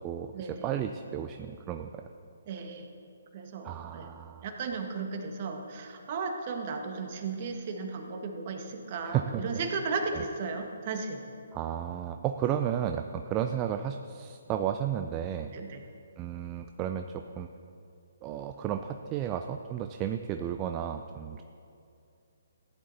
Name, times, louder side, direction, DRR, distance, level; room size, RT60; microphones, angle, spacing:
voice 1, 0.0-2.1 3.6-4.5 9.0-9.4 10.1-10.2 11.5-15.5 16.2-17.5 18.2-21.4, right 10 dB, 25° right, 7 dB, 0.4 m, -33 dB
voice 2, 2.5-2.9 3.3-4.1 4.4-11.2 15.5-15.8, right 4 dB, 40° right, 3 dB, 1.5 m, -35 dB
15.0 x 10.5 x 4.2 m, 2.6 s
hypercardioid pair, 145°, 0 cm